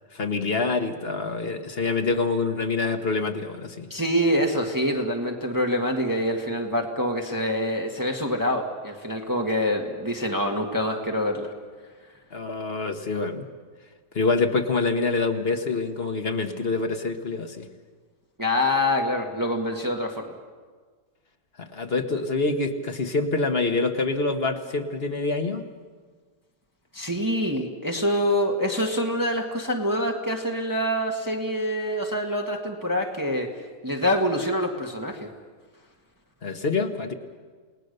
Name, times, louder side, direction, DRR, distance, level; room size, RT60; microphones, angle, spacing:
voice 1, 0.1-3.9 12.3-13.4 14.1-17.7 21.6-25.6 36.4-37.1, left 3 dB, 40° left, 5 dB, 1.3 m, -26 dB
voice 2, 3.9-11.5 18.4-20.4 26.9-33.5 33.8-35.3, equal, 10° right, 1 dB, 1.5 m, -25 dB
28.5 x 18.5 x 6.7 m, 1.5 s
omnidirectional pair, 1.8 m